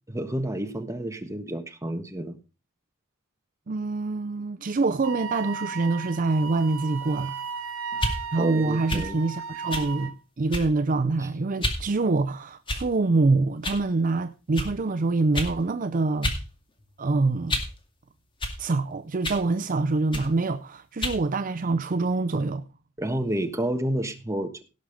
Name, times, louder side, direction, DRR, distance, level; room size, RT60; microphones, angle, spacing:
voice 1, 0.1-2.4 8.4-9.2 23.0-24.6, right 1 dB, 15° right, 1.3 m, -30 dB
voice 2, 3.7-7.3 8.3-16.3 17.0-17.6 18.6-22.6, right 3 dB, 40° right, 0.5 m, -25 dB
Wind instrument woodwind instrument, 5.0-10.2, right 6 dB, 75° right, 2.0 m, -35 dB
sound 1, 7.9-8.2 8.9-9.1 9.7-9.9 10.5-10.8 11.6-11.8 12.7-13.0 13.6-13.8 14.5-14.7 15.3-15.6 16.2-16.4 16.8-17.8 18.4-18.6 19.2-19.5 20.1-20.3 21.0-21.2, left 1 dB, 25° left, 2.1 m, -29 dB
17.0 x 6.3 x 5.0 m
head